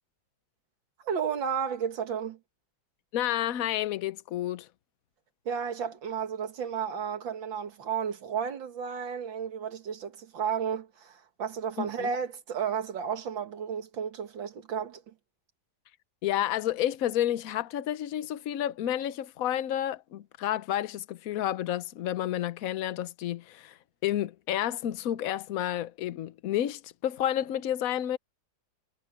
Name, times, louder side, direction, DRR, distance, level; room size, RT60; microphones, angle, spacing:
voice 1, 1.0-2.4 5.5-15.1, right 7 dB, 90° right, 2.4 m, -33 dB
voice 2, 3.1-4.7 11.8-12.1 16.2-23.8 24.0-28.2, left 12 dB, 60° left, 1.1 m, -30 dB
omnidirectional pair, 2.0 m